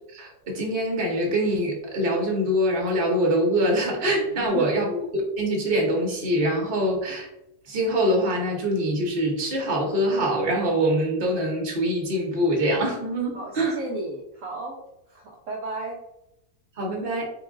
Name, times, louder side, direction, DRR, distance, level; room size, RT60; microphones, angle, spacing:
voice 1, 0.1-7.3 7.7-13.7 16.8-17.2, equal, 40° right, -1 dB, 1.0 m, -24 dB
voice 2, 4.3-4.7 13.3-14.8 15.1-16.0, right 2 dB, 65° right, -3 dB, 0.9 m, -34 dB
3.8 x 2.4 x 3.6 m, 0.84 s
omnidirectional pair, 1.6 m